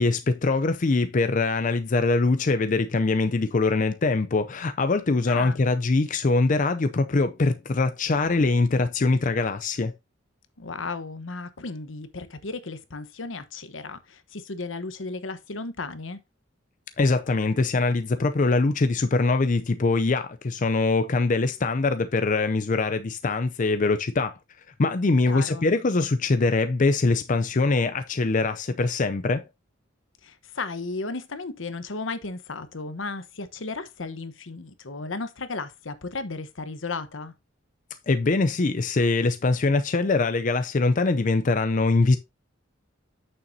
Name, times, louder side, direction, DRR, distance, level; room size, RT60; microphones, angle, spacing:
voice 1, 0.0-9.9 17.0-24.4 24.8-29.4 38.1-42.2, left 3 dB, 40° left, 0.5 m, -23 dB
voice 2, 5.3-5.7 10.6-16.2 25.2-25.7 30.2-37.3, left 3 dB, 80° left, 1.1 m, -35 dB
8.7 x 6.8 x 2.7 m
head